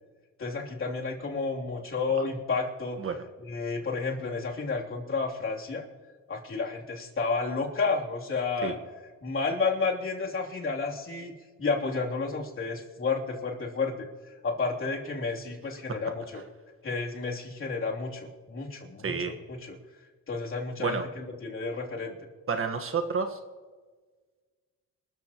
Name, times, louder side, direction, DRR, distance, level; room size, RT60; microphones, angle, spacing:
voice 1, 0.4-3.0 3.5-5.8 6.3-8.7 9.2-11.3 11.6-14.1 14.4-16.4 16.8-19.7 20.3-22.2, left 4 dB, 45° left, -2 dB, 3.2 m, -31 dB
voice 2, 22.5-23.4, right 5 dB, 45° right, 6 dB, 1.5 m, -30 dB
27.5 x 14.0 x 3.0 m, 1.4 s
cardioid pair, 90°, 30 cm